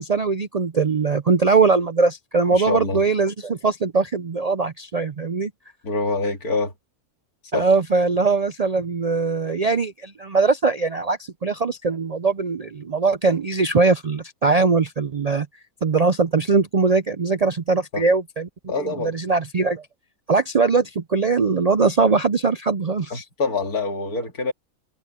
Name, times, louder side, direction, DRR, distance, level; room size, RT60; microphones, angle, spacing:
voice 1, 0.0-5.5 7.5-15.5 15.8-18.5 18.8-19.8 20.3-23.2, right 4 dB, 80° right, 0.3 m, -21 dB
voice 2, 2.5-3.0 5.8-6.7 7.5-7.7 17.9-18.0 18.7-19.1 23.1-24.5, left 3 dB, 80° left, 2.9 m, -25 dB
omnidirectional pair, 1.6 m